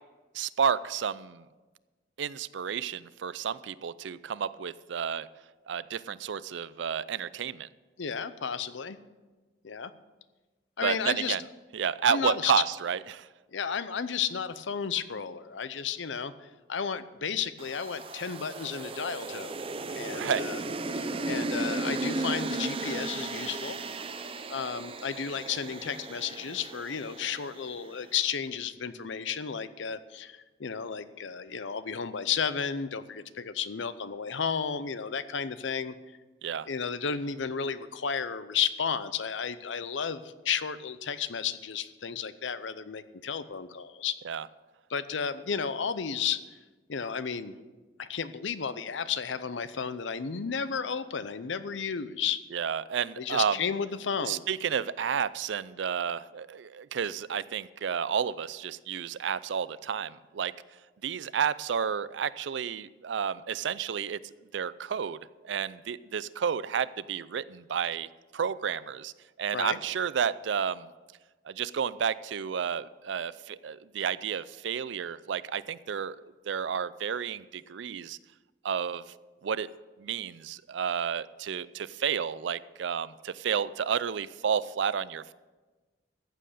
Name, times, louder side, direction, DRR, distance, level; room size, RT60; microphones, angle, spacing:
voice 1, 0.3-1.4 2.2-5.3 5.7-7.7 10.8-11.4 11.7-13.3 20.1-20.5 36.4-36.7 44.2-44.5 52.5-53.6 54.2-60.5 61.0-64.2 64.5-65.2 65.4-68.1 68.3-69.1 69.4-70.9 71.5-76.2 76.5-78.2 78.6-79.0 79.4-79.7 80.0-85.3, right 7 dB, 75° right, 18 dB, 0.4 m, -31 dB
voice 2, 8.0-9.0 9.6-9.9 10.8-11.4 12.1-12.5 13.5-19.6 20.0-20.6 20.9-23.8 24.5-35.9 36.7-44.2 44.9-46.4 46.9-47.6 48.0-52.4 53.2-54.4 69.5-69.8, left 6 dB, 80° left, 14 dB, 0.6 m, -33 dB
sound 1, 17.6-27.9, right 2 dB, 30° right, 0.6 m, -35 dB
14.5 x 7.7 x 6.6 m, 1.3 s
head